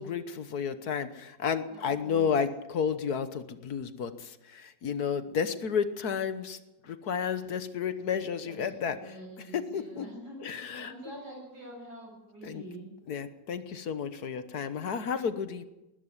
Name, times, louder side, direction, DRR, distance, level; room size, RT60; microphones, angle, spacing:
voice 1, 0.0-6.6 6.8-9.0 9.5-10.1 10.4-10.9 12.4-12.6 13.1-15.6, left 6 dB, 60° left, 12 dB, 1.6 m, -32 dB
voice 2, 1.7-2.3 8.5-12.9, right 1 dB, 65° right, -1 dB, 8.1 m, -46 dB
20.0 x 13.0 x 9.9 m, 0.96 s
omnidirectional pair, 1.9 m